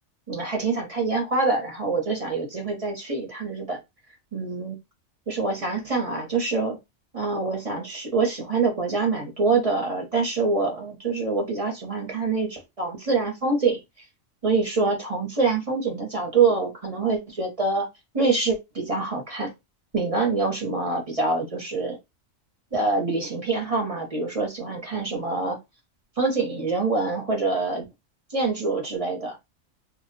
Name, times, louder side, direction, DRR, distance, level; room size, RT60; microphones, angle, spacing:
voice 1, 0.3-3.8 4.3-4.8 5.3-6.8 7.1-13.8 14.4-17.9 18.1-19.5 19.9-22.0 22.7-25.6 26.2-27.8 28.3-29.4, right 3 dB, 35° right, 0.7 m, -25 dB
2.3 x 2.1 x 3.8 m
omnidirectional pair, 1.4 m